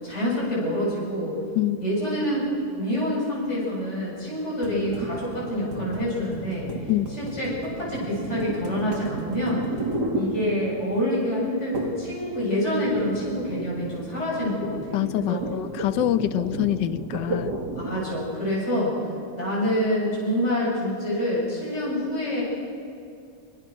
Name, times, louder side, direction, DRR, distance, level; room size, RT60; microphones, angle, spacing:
voice 1, 0.0-1.3 1.8-2.5 2.8-6.7 7.2-9.6 10.1-15.4 17.7-19.0 19.3-22.4, equal, 40° left, -6 dB, 8.1 m, -27 dB
sound 1, 4.6-10.9 11.7-12.1 12.4-18.1, right 2 dB, 70° right, 3.1 m, -33 dB
voice 2, 14.9-17.5, left 13 dB, 90° left, 14 dB, 1.5 m, -25 dB
26.5 x 25.0 x 6.3 m, 2.5 s
omnidirectional pair, 1.9 m